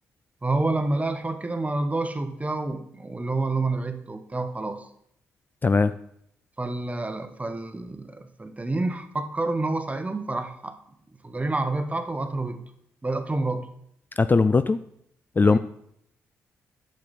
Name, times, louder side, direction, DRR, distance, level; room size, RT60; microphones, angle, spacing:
voice 1, 0.4-4.8 6.6-10.8 11.2-12.6 13.0-13.7 15.4-15.6, right 2 dB, 20° right, 9 dB, 1.0 m, -28 dB
voice 2, 14.2-14.8 15.4-15.6, left 4 dB, 30° left, 12 dB, 0.3 m, -19 dB
8.7 x 6.5 x 4.1 m, 0.71 s
hypercardioid pair, 45°, 7 cm